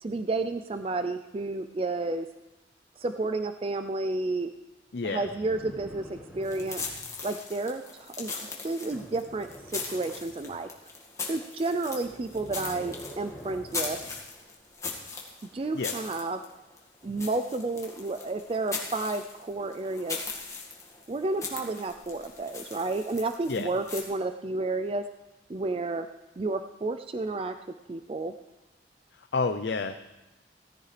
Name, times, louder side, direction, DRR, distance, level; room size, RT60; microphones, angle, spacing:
voice 1, 0.0-2.3 3.0-4.5 5.0-6.8 7.2-10.7 11.2-14.0 15.5-16.4 17.0-20.2 21.1-25.0 25.5-26.1 26.4-27.6 27.9-28.3, right 2 dB, 30° right, 9 dB, 0.4 m, -31 dB
voice 2, 4.9-5.3 15.7-15.9 23.5-23.7 29.1-30.0, left 4 dB, 75° left, 8 dB, 0.5 m, -30 dB
sound 1, 5.2-7.2 8.9-10.6 11.9-14.2 15.5-15.7, equal, ahead, 2.6 m, -46 dB
sound 2, 6.4-24.0, left 4 dB, 15° left, 1.8 m, -39 dB
17.5 x 15.0 x 3.3 m, 1.1 s
head